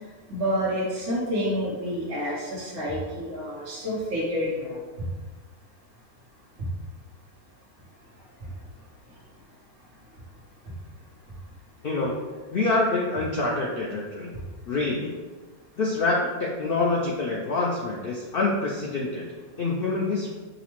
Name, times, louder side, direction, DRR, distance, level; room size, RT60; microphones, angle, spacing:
voice 1, 0.3-4.8, equal, 55° right, -8 dB, 1.2 m, -28 dB
voice 2, 12.5-14.3 14.7-15.1 15.8-19.2 19.6-20.4, left 3 dB, 85° left, -3 dB, 0.4 m, -26 dB
6.2 x 2.1 x 2.9 m, 1.3 s
omnidirectional pair, 1.6 m